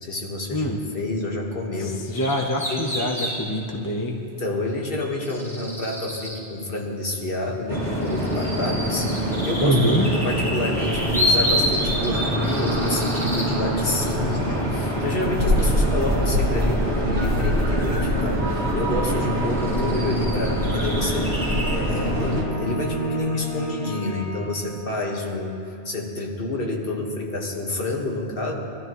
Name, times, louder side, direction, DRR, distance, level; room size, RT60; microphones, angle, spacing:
voice 1, 0.0-2.0 2.6-2.9 4.4-9.9 10.1-21.4 21.7-28.5, left 2 dB, 55° left, 0 dB, 1.7 m, -28 dB
voice 2, 1.8-4.2 9.6-10.1 12.4-12.5, equal, 20° left, 1 dB, 0.9 m, -24 dB
sound 1, 2.1-3.3 5.0-6.4 7.7-13.5 17.8-17.9 19.0-19.1 19.5-21.7, equal, ahead, 3.7 m, -28 dB
sound 2, 7.7-22.4, equal, 75° right, 2.8 m, -24 dB
sound 3, 21.1-25.1, right 1 dB, 90° left, 2.2 m, -31 dB
22.0 x 13.0 x 3.1 m, 2.6 s
omnidirectional pair, 1.2 m